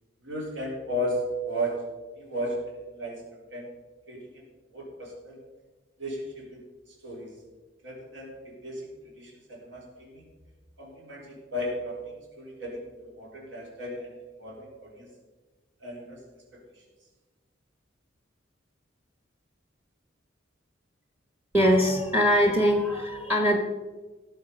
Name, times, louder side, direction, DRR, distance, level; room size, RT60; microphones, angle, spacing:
voice 1, 0.2-1.9 2.2-3.7 4.1-4.4 4.7-5.4 6.0-7.4 7.8-10.3 10.8-15.1 15.8-16.2 16.5-16.8, equal, 70° right, -3 dB, 3.9 m, -35 dB
voice 2, 21.5-23.6, equal, 10° right, 3 dB, 1.4 m, -22 dB
17.0 x 7.3 x 5.5 m, 1.3 s
head